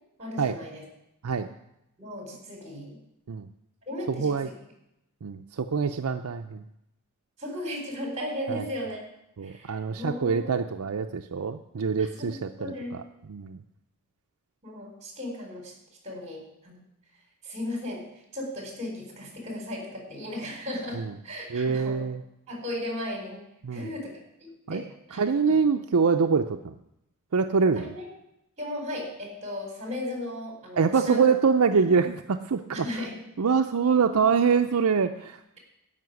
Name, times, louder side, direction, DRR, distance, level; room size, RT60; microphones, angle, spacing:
voice 1, 0.2-0.8 2.0-3.0 3.9-4.5 7.4-9.0 9.4-10.5 12.0-13.0 14.6-15.7 16.0-16.8 17.4-18.1 18.3-22.0 22.5-23.4 23.7-25.6 27.7-28.0 28.6-31.3 32.8-33.2, left 1 dB, 30° right, 1 dB, 4.3 m, -36 dB
voice 2, 4.1-4.5 5.2-6.6 8.5-8.6 9.4-12.7 13.3-13.6 21.0-21.1 21.5-22.2 23.6-23.9 24.7-24.8 25.2-26.7 27.3-27.9 30.8-32.6 33.4-35.4, right 5 dB, 70° right, 6 dB, 0.5 m, -24 dB
12.5 x 5.9 x 9.4 m, 0.83 s
head